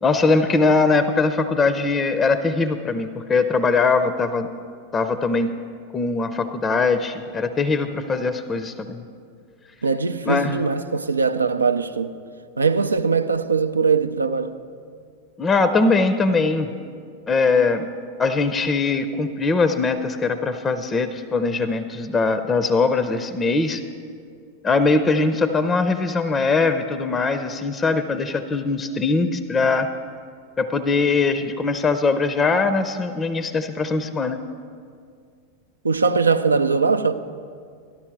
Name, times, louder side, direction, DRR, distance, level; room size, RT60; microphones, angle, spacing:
voice 1, 0.0-4.5 4.9-5.5 5.9-9.0 10.2-10.6 15.4-16.7 17.3-17.9 18.2-23.8 24.6-29.9 30.6-34.4, left 4 dB, 20° left, 0.5 m, -21 dB
voice 2, 9.8-12.1 12.6-14.5 35.8-37.1, right 5 dB, 75° right, 0.4 m, -21 dB
13.5 x 12.0 x 4.6 m
figure-of-eight pair, 90°, 0 cm